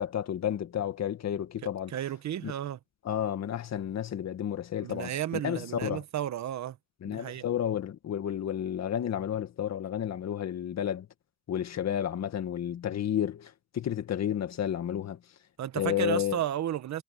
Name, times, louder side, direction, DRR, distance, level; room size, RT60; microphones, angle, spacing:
voice 1, 0.0-1.9 2.4-2.5 3.0-5.1 5.4-6.0 7.0-11.1 11.5-15.2 15.8-16.4, left 10 dB, 60° left, 2.0 m, -31 dB
voice 2, 1.9-2.8 4.8-6.8 7.1-7.4 15.6-17.0, right 11 dB, 65° right, 1.3 m, -33 dB
cardioid pair, 90°, 30 cm